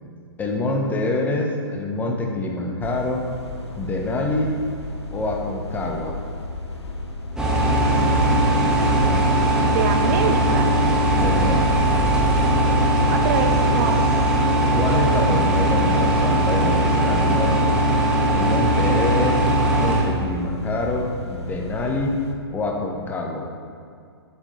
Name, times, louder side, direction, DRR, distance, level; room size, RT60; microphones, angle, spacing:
voice 1, 0.4-3.2 3.8-4.5 5.1-6.1 11.1-11.8 14.7-17.8 18.3-22.2 22.5-23.5, left 2 dB, 10° left, 1 dB, 0.9 m, -26 dB
sound 1, 2.8-22.4, left 1 dB, 90° left, 1.1 m, -34 dB
sound 2, 7.4-20.0, right 1 dB, 5° right, 1.5 m, -19 dB
voice 2, 7.9-9.3 9.6-10.7 13.1-14.0, right 6 dB, 35° right, 5 dB, 0.5 m, -27 dB
8.8 x 7.9 x 3.2 m, 2.2 s
figure-of-eight pair, 125°, 14 cm